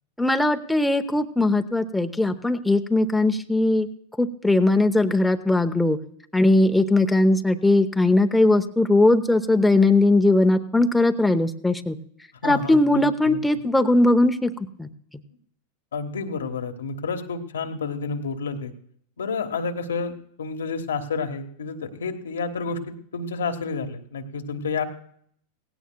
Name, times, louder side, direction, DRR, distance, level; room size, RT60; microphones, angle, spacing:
voice 1, 0.2-3.9 4.2-6.0 6.3-12.0 12.4-14.5 14.8-14.9, left 2 dB, 5° left, 6 dB, 0.8 m, -19 dB
voice 2, 12.4-13.4 15.9-18.7 19.2-24.8, left 4 dB, 85° left, 5 dB, 1.2 m, -30 dB
18.0 x 16.5 x 2.2 m, 0.64 s
hypercardioid pair, 100°, 0 cm